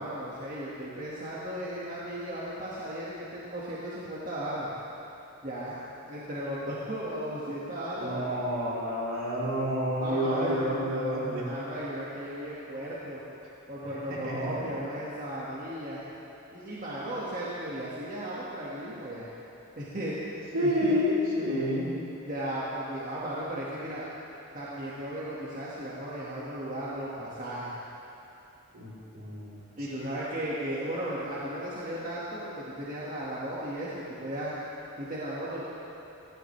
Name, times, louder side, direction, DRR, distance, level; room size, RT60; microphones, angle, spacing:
voice 1, 0.0-4.7 5.4-5.8 6.1-8.4 10.0-10.6 11.4-13.2 13.7-16.0 16.5-19.3 19.8-20.2 20.5-21.0 22.2-24.0 24.5-27.7 29.8-34.5 35.0-35.6, right 1 dB, 35° right, -8 dB, 1.8 m, -35 dB
voice 2, 8.0-11.5 14.1-14.7 20.5-21.9 28.7-29.5, equal, 65° right, -7 dB, 3.8 m, -29 dB
18.0 x 16.0 x 3.3 m, 2.9 s
head